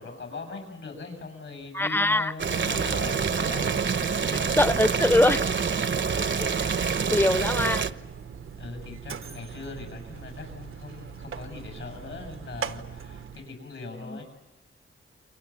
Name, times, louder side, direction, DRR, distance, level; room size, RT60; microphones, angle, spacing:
voice 1, 0.0-3.8 4.1-4.7 8.5-14.2, left 4 dB, 75° left, 7.8 m, -40 dB
voice 2, 1.7-2.3 4.3-5.5 6.2-6.3 7.1-7.8 14.1-14.2, left 1 dB, 10° left, 0.8 m, -23 dB
Boiling, 2.4-7.9, right 6 dB, 65° right, 1.0 m, -26 dB
Mechanisms, 2.8-13.6, right 7 dB, 80° right, 1.1 m, -41 dB
29.5 x 25.0 x 7.4 m
wide cardioid pair, 80°, 21 cm